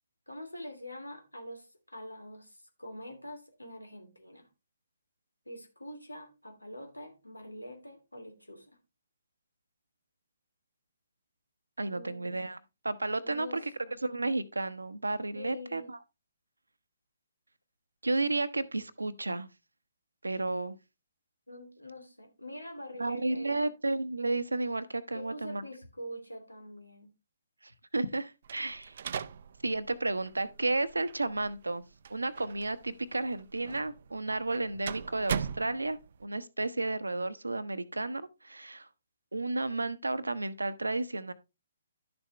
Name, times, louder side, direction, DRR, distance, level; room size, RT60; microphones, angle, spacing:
voice 1, 0.3-4.5 5.5-8.7 11.9-12.4 13.2-14.0 15.3-15.9 21.5-23.7 25.1-27.1, equal, 90° left, 2.8 m, -45 dB
voice 2, 11.8-12.6 12.8-13.7 14.0-16.0 18.0-19.5 20.2-20.8 23.0-25.6 27.6-29.0 29.6-31.8 32.1-38.9 39.3-41.3, right 2 dB, 80° right, 1.0 m, -32 dB
sound 1, 28.4-36.3, right 7 dB, 50° right, 0.6 m, -40 dB
11.5 x 7.0 x 3.3 m
figure-of-eight pair, 135°, 0 cm